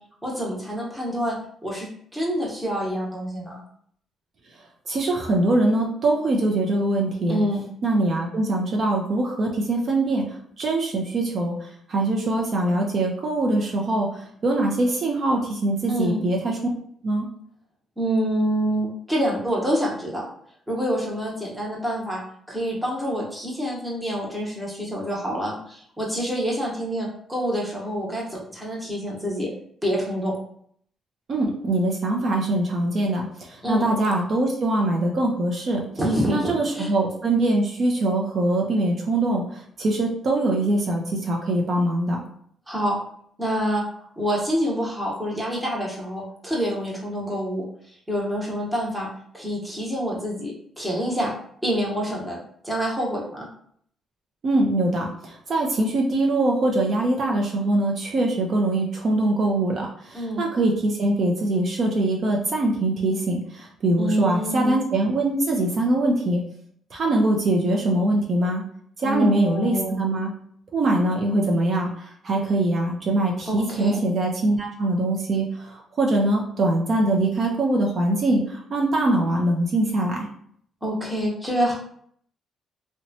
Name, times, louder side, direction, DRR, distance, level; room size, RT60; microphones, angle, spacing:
voice 1, 0.2-3.6 7.3-7.6 15.9-16.2 18.0-20.3 20.7-29.5 29.8-30.4 33.6-33.9 36.0-36.9 42.7-43.0 43.4-43.8 44.2-47.6 48.1-51.3 51.6-53.5 60.1-60.4 64.0-64.8 69.0-70.0 73.5-74.0 80.8-81.8, equal, 5° right, -3 dB, 0.9 m, -27 dB
voice 2, 4.9-7.4 7.8-10.2 10.6-16.6 17.0-17.3 31.3-35.8 36.3-42.2 54.4-66.4 66.9-68.6 69.0-70.3 70.7-80.3, right 2 dB, 50° right, -1 dB, 0.5 m, -23 dB
2.8 x 2.2 x 2.7 m, 0.64 s
cardioid pair, 90°, 0 cm